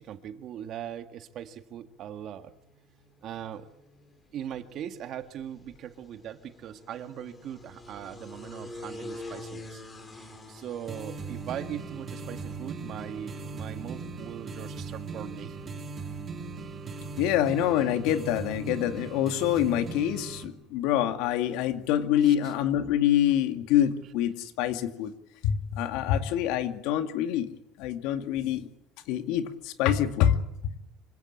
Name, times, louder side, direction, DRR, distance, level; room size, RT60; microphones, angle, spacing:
voice 1, 0.0-2.5 3.2-3.7 4.3-9.8 10.5-15.5 22.2-22.4, right 10 dB, 45° right, 8 dB, 1.9 m, -40 dB
sound 1, 2.2-20.2, left 2 dB, 20° left, 4.4 m, -49 dB
sound 2, 10.9-20.5, right 4 dB, 25° right, 2.6 m, -38 dB
voice 2, 17.2-25.1 25.4-27.5 27.8-28.7 29.1-30.4, left 11 dB, 80° left, 8 dB, 2.3 m, -26 dB
26.0 x 17.0 x 8.5 m, 0.83 s
cardioid pair, 150°, 0 cm